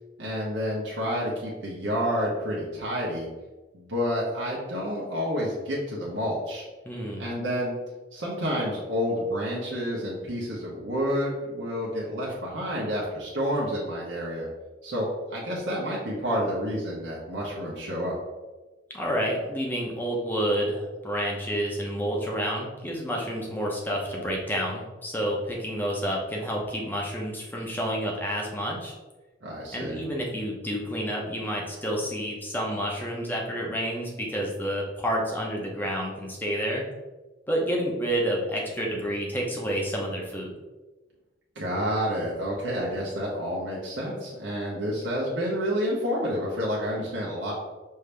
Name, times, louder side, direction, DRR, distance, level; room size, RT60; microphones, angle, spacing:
voice 1, 0.2-3.3 3.7-6.6 7.2-7.7 8.1-14.5 14.8-18.2 29.4-30.0 41.5-47.5, equal, 70° right, -5 dB, 0.9 m, -29 dB
voice 2, 6.8-7.3 18.9-28.9 29.7-36.9 37.5-40.5, equal, 10° left, -2 dB, 0.8 m, -29 dB
5.5 x 2.7 x 3.3 m, 1.2 s
head